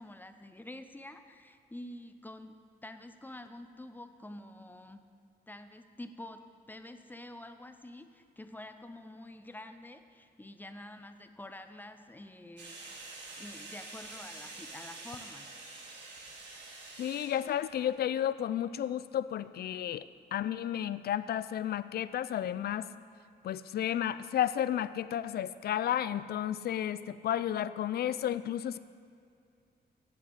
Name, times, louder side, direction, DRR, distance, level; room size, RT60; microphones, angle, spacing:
voice 1, 0.0-5.0 5.5-6.4 6.7-13.0 13.4-15.5, left 1 dB, 10° left, 8 dB, 0.6 m, -48 dB
sound 1, 12.6-17.8, right 3 dB, 90° right, 1.7 m, -47 dB
voice 2, 17.0-22.9 23.4-28.8, left 10 dB, 65° left, 15 dB, 0.4 m, -32 dB
7.7 x 7.7 x 8.2 m, 2.3 s
cardioid pair, 95°, 18 cm